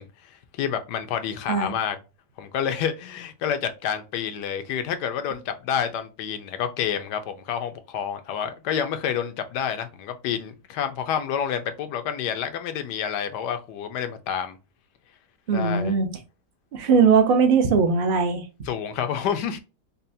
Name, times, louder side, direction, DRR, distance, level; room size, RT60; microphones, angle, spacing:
voice 1, 0.0-2.0 2.4-14.6 15.5-16.0 18.7-19.6, left 8 dB, 80° left, 1.2 m, -29 dB
voice 2, 15.5-16.1 16.7-18.5, right 5 dB, 50° right, 0.7 m, -20 dB
5.4 x 2.2 x 2.6 m
omnidirectional pair, 1.8 m